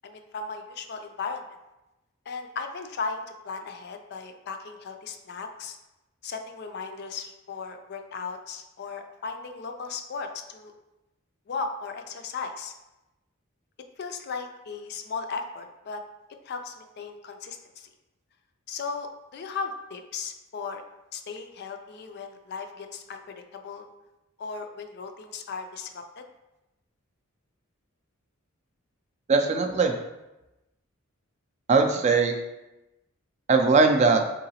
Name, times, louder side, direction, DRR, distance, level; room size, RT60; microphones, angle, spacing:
voice 1, 0.0-1.4 2.3-5.8 6.2-10.7 11.5-12.7 14.0-16.0 16.5-17.9 18.7-20.8 21.1-23.8 24.4-26.2, left 4 dB, 50° left, 5 dB, 0.4 m, -36 dB
voice 2, 29.3-29.9 31.7-32.4 33.5-34.2, right 4 dB, 30° right, 5 dB, 0.3 m, -20 dB
3.8 x 3.8 x 2.8 m, 0.98 s
head